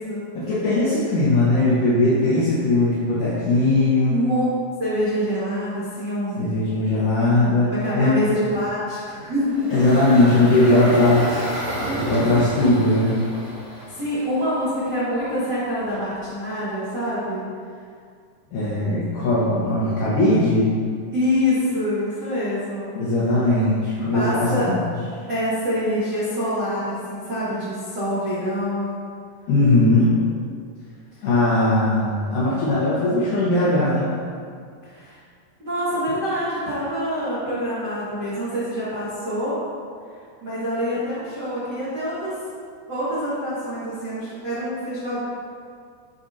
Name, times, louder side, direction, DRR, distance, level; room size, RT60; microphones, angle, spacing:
voice 1, 0.3-4.2 6.4-8.2 9.7-11.6 12.0-13.2 18.5-20.7 23.0-24.8 29.5-30.1 31.2-34.2, left 2 dB, 75° left, -9 dB, 1.9 m, -19 dB
voice 2, 4.1-4.4 4.8-6.5 7.7-9.7 13.8-17.4 21.1-22.9 24.1-24.7 25.3-29.0 31.2-31.3 34.8-35.2 35.6-39.5 40.4-42.3 42.9-45.2, equal, 80° right, -11 dB, 0.9 m, -26 dB
Engine, 9.4-14.7, right 1 dB, 50° right, 2.6 m, -29 dB
13.0 x 4.3 x 2.8 m, 2.2 s
omnidirectional pair, 5.3 m